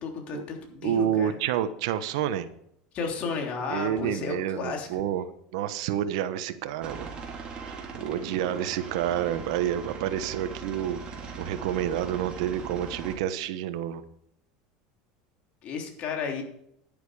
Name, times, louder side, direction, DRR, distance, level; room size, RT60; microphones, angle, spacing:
voice 1, 0.0-1.3 2.9-5.0 15.6-16.4, left 5 dB, 45° left, 2 dB, 3.4 m, -33 dB
voice 2, 0.8-2.5 3.7-5.3 5.5-7.1 7.9-14.0, right 10 dB, 75° right, 11 dB, 1.2 m, -29 dB
Aircraft, 6.8-13.1, right 5 dB, 30° right, 3.5 m, -40 dB
10.5 x 10.0 x 4.9 m, 0.73 s
supercardioid pair, 125°, 3 cm